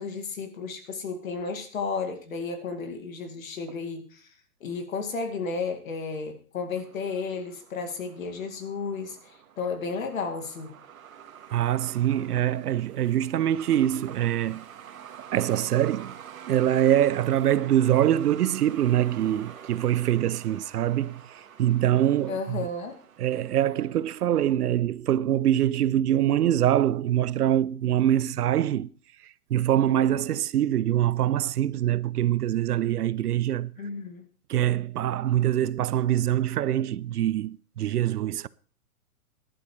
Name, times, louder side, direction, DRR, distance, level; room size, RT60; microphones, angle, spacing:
voice 1, 0.0-4.3 4.6-10.7 22.3-23.0 33.8-34.3, left 4 dB, 65° left, 2.4 m, -33 dB
Truck, 6.8-24.2, right 9 dB, 65° right, 1.6 m, -47 dB
voice 2, 11.5-14.6 15.3-16.2 16.5-22.7 23.2-28.9 29.5-33.7 34.5-38.5, right 11 dB, 85° right, 0.7 m, -24 dB
15.5 x 11.0 x 3.2 m
hypercardioid pair, 165°, 44 cm